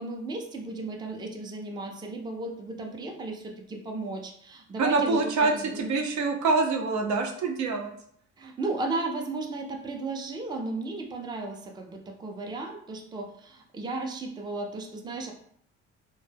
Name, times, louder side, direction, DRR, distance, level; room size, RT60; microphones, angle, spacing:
voice 1, 0.0-5.8 8.4-15.3, right 2 dB, 15° right, 2 dB, 0.4 m, -35 dB
voice 2, 4.8-5.5 5.8-7.9, right 3 dB, 70° right, 3 dB, 0.5 m, -25 dB
2.1 x 2.1 x 3.2 m, 0.64 s
cardioid pair, 90°, 30 cm